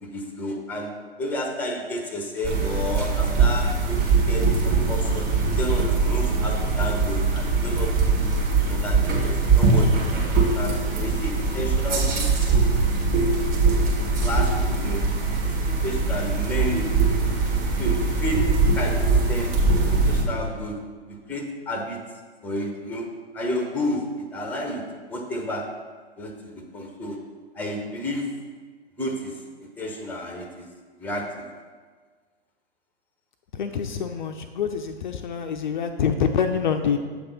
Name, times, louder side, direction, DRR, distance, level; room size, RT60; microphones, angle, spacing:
voice 1, 0.0-5.3 5.6-8.3 8.6-9.9 10.5-12.5 12.9-13.2 14.2-15.2 15.4-17.1 17.8-19.6 19.8-22.1 22.4-25.8 26.2-27.2 27.5-28.4 29.0-29.4 29.8-30.6 31.0-31.6, left 1 dB, 5° left, 3 dB, 0.7 m, -31 dB
sound 1, 2.4-20.2, right 4 dB, 25° right, 1.5 m, -22 dB
voice 2, 33.5-37.0, left 7 dB, 50° left, 6 dB, 0.4 m, -26 dB
7.4 x 3.4 x 5.6 m, 1.5 s
figure-of-eight pair, 115°, 32 cm